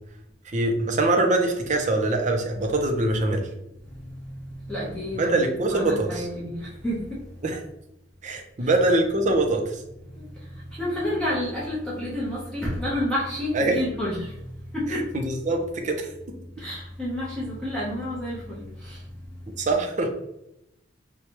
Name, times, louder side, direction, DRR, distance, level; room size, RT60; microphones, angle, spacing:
voice 1, 0.5-3.4 5.2-6.2 7.4-7.6 8.2-9.8 13.5-13.7 14.9-16.1 19.6-20.1, right 2 dB, 40° right, 3 dB, 0.6 m, -23 dB
voice 2, 3.9-7.2 8.6-8.7 10.2-10.3 10.8-15.1 16.6-19.0, left 1 dB, 5° left, -8 dB, 0.9 m, -30 dB
4.5 x 2.3 x 2.9 m, 0.82 s
head